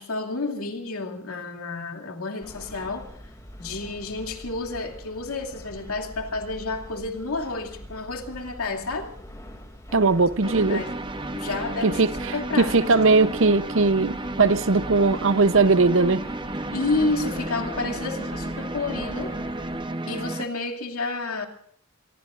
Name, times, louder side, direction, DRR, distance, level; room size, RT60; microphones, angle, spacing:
voice 1, 0.0-3.1 3.6-9.1 10.0-10.1 10.5-10.9 11.4-12.0 12.3-13.0 16.7-19.3 20.1-21.5, left 3 dB, 85° left, 2.6 m, -30 dB
sound 1, 2.4-19.8, equal, 15° left, 2.6 m, -44 dB
voice 2, 9.9-10.8 11.8-16.2, right 3 dB, 60° right, 0.7 m, -20 dB
sound 2, 10.4-20.5, right 2 dB, 20° right, 0.8 m, -33 dB
25.0 x 23.0 x 2.5 m
head